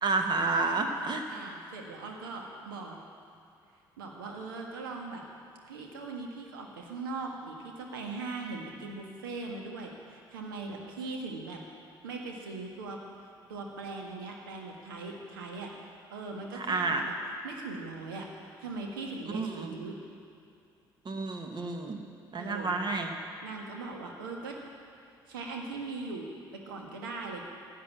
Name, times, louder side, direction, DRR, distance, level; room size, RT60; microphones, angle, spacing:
voice 1, 0.0-1.2 16.5-17.1 19.3-19.7 21.1-22.0 22.3-23.2, right 3 dB, 40° right, 4 dB, 1.7 m, -30 dB
voice 2, 1.3-3.0 4.0-5.2 5.7-11.6 12.0-13.0 13.5-15.7 16.1-17.1 17.4-20.0 22.4-22.8 23.4-24.6 25.3-27.4, right 3 dB, 75° right, 1 dB, 1.7 m, -40 dB
16.0 x 9.4 x 7.5 m, 2.5 s
figure-of-eight pair, 45°, 12 cm